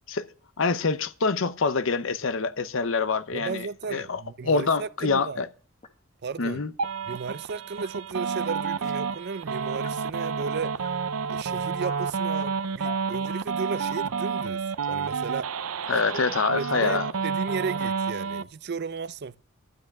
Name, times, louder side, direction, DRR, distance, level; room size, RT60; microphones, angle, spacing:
voice 1, 0.6-5.5 6.4-6.7 15.9-17.1, left 4 dB, 65° left, 0.7 m, -26 dB
sound 1, 1.8-1.9 2.8-2.9 3.8-3.9 4.8-4.9 5.8-5.9 6.8-6.9 7.8-7.9 8.8-8.9 9.8-9.9 10.8-10.9 11.8-12.0 12.8-13.1 13.8-14.1 14.8-15.1 15.8-16.0 16.8-17.0 17.8-18.0, left 6 dB, 35° left, 1.5 m, -45 dB
voice 2, 3.3-5.4 6.2-6.6 7.1-10.8 11.3-15.5 15.9-16.2 16.5-19.4, right 5 dB, 50° right, 0.5 m, -34 dB
sound 2, 6.8-18.4, right 5 dB, 90° right, 0.6 m, -30 dB
12.5 x 8.5 x 6.5 m
head